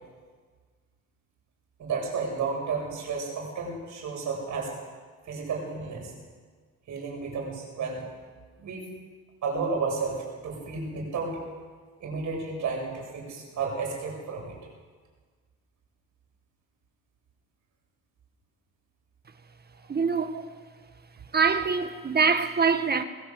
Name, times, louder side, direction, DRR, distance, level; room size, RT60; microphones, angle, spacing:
voice 1, 1.8-4.8 5.3-6.1 6.9-8.1 8.6-8.9 9.4-11.4 12.0-14.6 19.8-19.9 20.3-20.4, right 4 dB, 70° right, 7.6 m, -32 dB
voice 2, 19.9-20.4 21.3-23.0, right 5 dB, 30° right, 1.8 m, -24 dB
21.0 x 17.5 x 8.0 m
cardioid pair, 90°, 30 cm